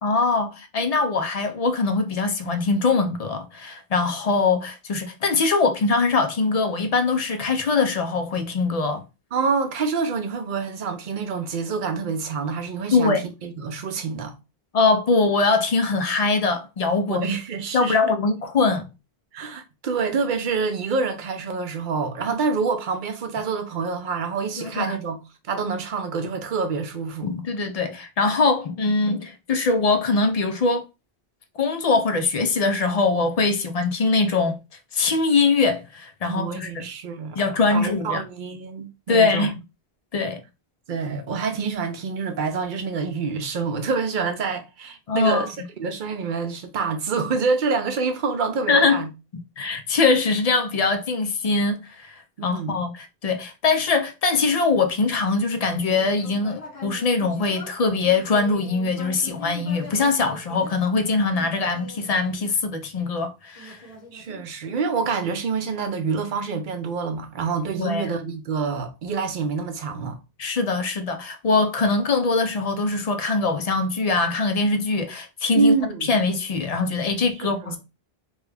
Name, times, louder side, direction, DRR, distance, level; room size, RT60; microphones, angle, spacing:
voice 1, 0.0-9.0 12.9-13.3 14.7-17.3 17.7-18.9 24.6-25.0 27.2-30.8 31.6-34.6 34.9-36.8 37.4-38.2 39.1-39.6 40.1-40.4 45.1-45.5 48.7-49.0 49.6-63.8 67.8-68.1 70.4-75.7 76.0-77.8, left 4 dB, 55° left, 0.4 m, -22 dB
voice 2, 9.3-14.3 17.1-18.1 19.3-25.2 25.4-27.3 36.2-37.4 37.7-39.5 40.9-45.5 45.8-49.1 52.4-52.8 64.1-70.2 75.6-76.1 77.4-77.8, right 5 dB, 55° right, 0.7 m, -27 dB
Human voice, 55.6-63.0 63.5-65.0, left 2 dB, 35° left, 0.8 m, -42 dB
3.0 x 2.3 x 3.2 m
omnidirectional pair, 1.0 m